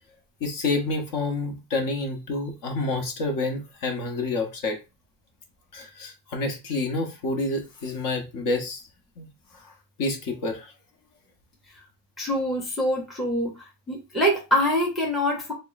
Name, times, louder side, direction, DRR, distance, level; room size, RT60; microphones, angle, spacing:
voice 1, 0.4-4.8 5.7-8.9 9.2-9.7 10.0-10.7, left 2 dB, 45° left, 0.9 m, -28 dB
voice 2, 12.2-15.5, equal, ahead, 0.7 m, -25 dB
3.5 x 2.1 x 3.9 m
cardioid pair, 170°, 46 cm